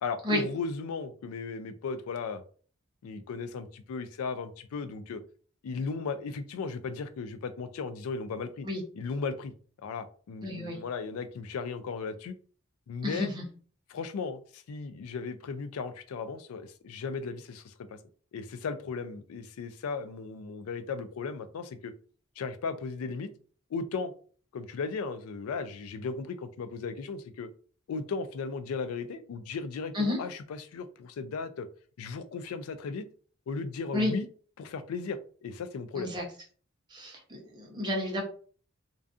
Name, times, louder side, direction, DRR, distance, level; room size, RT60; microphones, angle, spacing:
voice 1, 0.0-2.4 3.0-5.2 5.6-8.7 9.0-9.5 9.8-12.3 12.9-13.3 13.9-18.0 18.3-21.9 22.4-23.3 23.7-24.1 24.5-27.5 27.9-31.7 32.0-33.0 33.5-34.3 34.6-36.1, left 4 dB, 90° left, 11 dB, 0.3 m, -36 dB
voice 2, 10.4-10.8 13.0-13.4 29.9-30.2 33.9-34.1 35.9-36.2 36.9-38.2, left 1 dB, 20° right, -1 dB, 0.7 m, -31 dB
2.5 x 2.3 x 2.4 m, 0.43 s
head